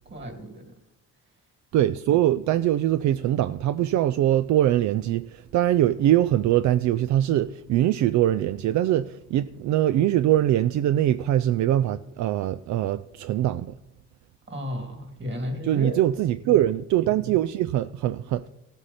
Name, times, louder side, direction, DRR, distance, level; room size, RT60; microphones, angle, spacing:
voice 1, 0.1-0.6 14.5-16.0, left 1 dB, 35° right, 2.6 m, -33 dB
voice 2, 1.7-13.7 15.6-18.5, right 12 dB, 70° right, 0.4 m, -22 dB
16.0 x 8.0 x 4.2 m
cardioid pair, 90°, 30 cm